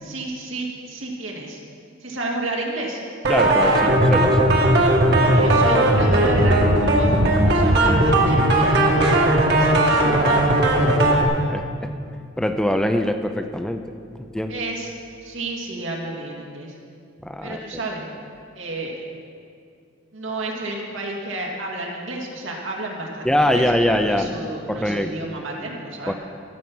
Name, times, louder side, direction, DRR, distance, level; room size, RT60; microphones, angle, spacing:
voice 1, 0.0-1.6 2.0-3.0 3.8-3.9 5.1-10.5 14.5-14.9 15.2-16.7 17.4-18.0 18.6-19.0 20.1-26.1, right 2 dB, 85° right, -1 dB, 2.3 m, -31 dB
sound 1, 3.2-11.2, right 1 dB, 60° right, 1.5 m, -17 dB
voice 2, 3.3-4.5 11.5-11.9 12.4-13.9 14.2-14.5 17.2-17.6 23.2-24.3 24.7-25.1 26.1-26.2, left 1 dB, 5° left, 6 dB, 0.4 m, -23 dB
14.5 x 7.2 x 6.1 m, 2.3 s
head